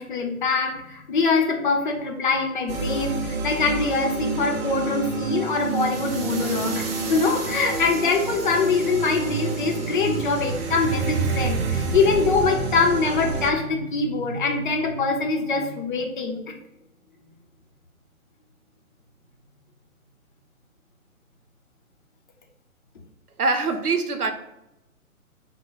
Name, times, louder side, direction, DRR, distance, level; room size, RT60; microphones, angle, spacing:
voice 1, 0.0-16.4, left 4 dB, 35° left, 1 dB, 0.7 m, -23 dB
sound 1, 2.7-13.5, right 4 dB, 45° right, 0.6 m, -28 dB
voice 2, 23.4-24.3, right 3 dB, 90° right, 7 dB, 0.8 m, -23 dB
5.2 x 2.2 x 3.9 m, 0.90 s
figure-of-eight pair, 135°, 44 cm